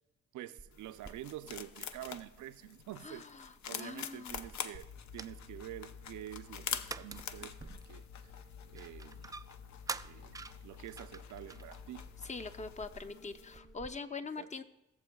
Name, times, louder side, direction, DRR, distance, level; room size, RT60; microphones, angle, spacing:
voice 1, 0.3-8.1 8.7-9.4 10.0-12.0 14.4-14.5, right 13 dB, 75° right, 12 dB, 0.6 m, -47 dB
sound 1, 0.6-13.9, right 3 dB, 10° right, 0.3 m, -50 dB
sound 2, 0.7-13.6, left 8 dB, 65° left, 0.6 m, -47 dB
voice 2, 3.0-4.5 12.2-14.6, left 4 dB, 25° left, 8 dB, 0.7 m, -43 dB
sound 3, 4.7-13.7, left 6 dB, 90° left, 1.4 m, -53 dB
17.5 x 7.0 x 2.3 m, 0.96 s
supercardioid pair, 60°, 30 cm